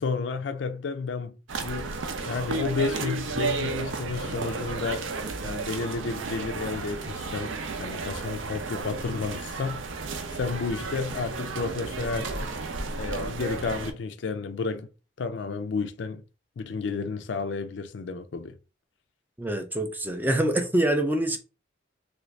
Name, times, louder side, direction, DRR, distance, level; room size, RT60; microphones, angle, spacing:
voice 1, 0.0-1.3 1.6-5.1 5.4-9.8 10.3-12.5 13.0-14.9 15.2-16.2 16.6-18.6, left 4 dB, 70° left, 0.4 m, -31 dB
sound 1, 1.5-13.9, right 3 dB, 85° right, 0.6 m, -33 dB
voice 2, 19.4-21.4, right 1 dB, 10° right, 0.3 m, -25 dB
3.4 x 2.5 x 3.1 m
head